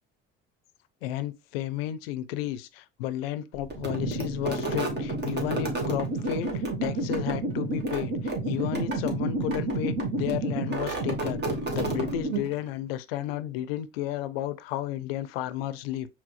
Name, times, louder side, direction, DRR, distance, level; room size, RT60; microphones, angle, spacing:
voice 1, 1.0-11.4 11.7-16.1, left 12 dB, 85° left, 0.5 m, -33 dB
sound 1, 3.7-12.7, right 2 dB, 35° right, 1.6 m, -30 dB
4.9 x 3.5 x 2.4 m
hypercardioid pair, 65°, 29 cm